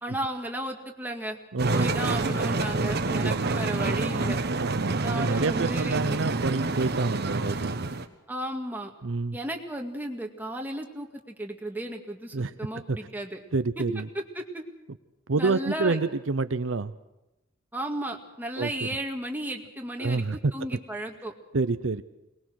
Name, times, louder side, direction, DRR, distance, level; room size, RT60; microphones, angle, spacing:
voice 1, 0.0-1.4 1.7-4.4 5.0-6.3 8.3-8.9 9.3-13.4 13.8-13.9 14.1-14.6 15.3-16.0 17.7-20.2 20.5-21.3, right 1 dB, 10° right, 2 dB, 2.0 m, -34 dB
voice 2, 1.5-2.0 3.2-3.5 4.6-7.9 9.0-9.4 12.3-12.5 12.9-13.0 13.5-14.1 15.3-16.9 18.6-18.9 20.0-20.4 21.5-22.0, right 3 dB, 80° right, 12 dB, 0.7 m, -28 dB
sound 1, 1.6-8.1, right 3 dB, 55° right, 1.3 m, -28 dB
22.5 x 20.0 x 6.4 m, 0.96 s
head